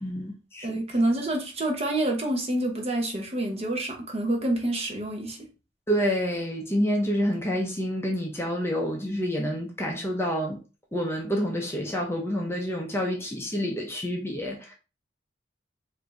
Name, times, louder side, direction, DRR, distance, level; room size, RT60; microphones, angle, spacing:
voice 1, 0.0-0.8 5.9-10.6 10.9-14.7, equal, 15° left, 0.7 m, -28 dB
voice 2, 0.6-5.4, right 1 dB, 30° right, 0.9 m, -27 dB
5.0 x 2.7 x 3.2 m
head